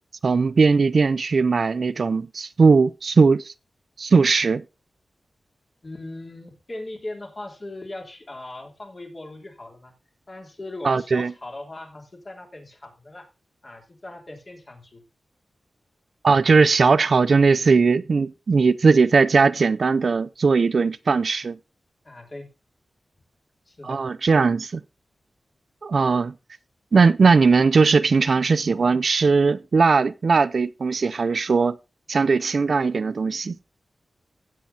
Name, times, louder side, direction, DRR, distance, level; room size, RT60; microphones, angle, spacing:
voice 1, 0.2-3.5 4.0-4.6 10.8-11.3 16.2-21.6 23.8-24.8 25.8-26.3 26.9-31.8 32.1-33.6, right 4 dB, 60° right, 0.4 m, -19 dB
voice 2, 5.8-9.9 10.3-13.3 13.6-15.0 22.0-22.5 23.7-24.0, left 2 dB, 35° left, 3.2 m, -39 dB
15.5 x 7.5 x 2.8 m
wide cardioid pair, 105°, 0 cm